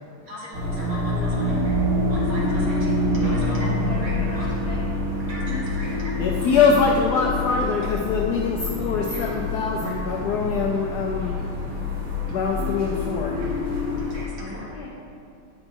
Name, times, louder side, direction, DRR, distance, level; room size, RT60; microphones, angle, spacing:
voice 1, 0.3-1.8 2.1-3.7 4.0-4.5 5.3-6.5 8.8-9.2 14.1-14.6, equal, 45° right, -6 dB, 1.8 m, -39 dB
sound 1, 0.5-14.2, left 1 dB, 75° right, 2.4 m, -27 dB
sound 2, 1.5-14.0, left 1 dB, 5° right, 1.2 m, -31 dB
voice 2, 3.5-4.9 14.4-14.9, left 2 dB, 60° left, -4 dB, 1.1 m, -38 dB
voice 3, 6.2-11.5 12.3-13.5, left 5 dB, 85° left, 0 dB, 0.8 m, -23 dB
8.7 x 5.4 x 4.4 m, 2.5 s
omnidirectional pair, 2.4 m